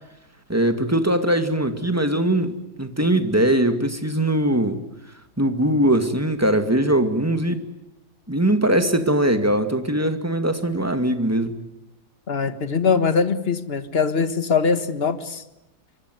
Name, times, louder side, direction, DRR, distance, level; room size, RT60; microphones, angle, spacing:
voice 1, 0.5-4.8 5.4-7.6 8.3-11.6, right 1 dB, 10° right, 8 dB, 2.2 m, -21 dB
voice 2, 12.3-15.4, left 5 dB, 40° left, 11 dB, 1.8 m, -22 dB
24.5 x 24.0 x 9.4 m, 0.92 s
omnidirectional pair, 1.7 m